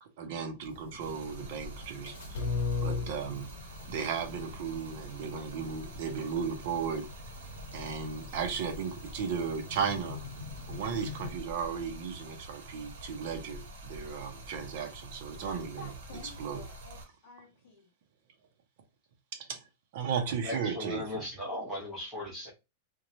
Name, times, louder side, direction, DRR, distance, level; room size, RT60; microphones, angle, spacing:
voice 1, 0.0-2.4 2.8-3.5 3.9-7.1 7.7-10.2 10.7-15.8 16.4-16.6 19.3-19.6 19.9-21.2, right 6 dB, 45° right, 0.6 m, -35 dB
sound 1, 0.6-11.3, left 4 dB, 75° left, 0.8 m, -40 dB
Stream, 1.0-17.0, right 1 dB, 75° right, 0.9 m, -47 dB
voice 2, 15.4-17.9, left 3 dB, 40° left, 0.8 m, -50 dB
voice 3, 20.4-22.5, left 1 dB, 10° right, 0.8 m, -38 dB
2.9 x 2.2 x 2.6 m
supercardioid pair, 180°, 0 cm